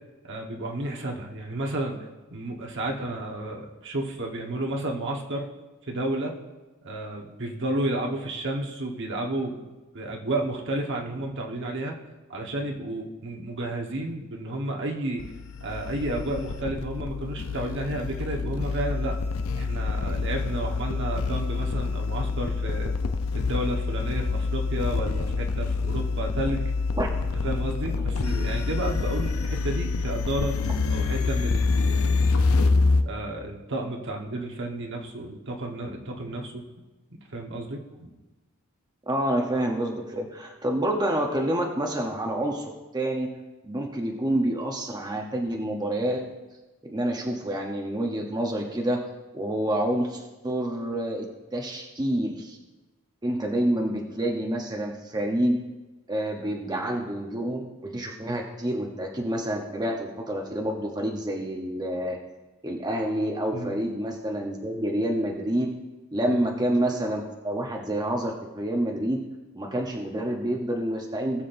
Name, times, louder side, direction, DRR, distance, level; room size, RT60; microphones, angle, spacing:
voice 1, 0.2-2.0 2.3-5.5 5.9-6.4 6.8-12.0 12.3-15.2 15.6-19.2 19.5-22.9 23.3-26.7 27.4-30.6 30.9-32.7 33.0-36.6 37.1-38.1 63.5-63.8 66.3-66.4, right 1 dB, 55° right, 1 dB, 1.2 m, -32 dB
sound 1, 15.2-33.0, left 4 dB, 70° left, 0.6 m, -26 dB
voice 2, 39.1-43.3 43.6-46.3 46.8-49.0 49.3-52.6 53.2-55.6 56.1-62.2 62.6-65.7 66.1-69.2 69.6-71.4, right 1 dB, 20° right, 1 dB, 0.8 m, -28 dB
19.5 x 7.3 x 2.6 m, 1.1 s
head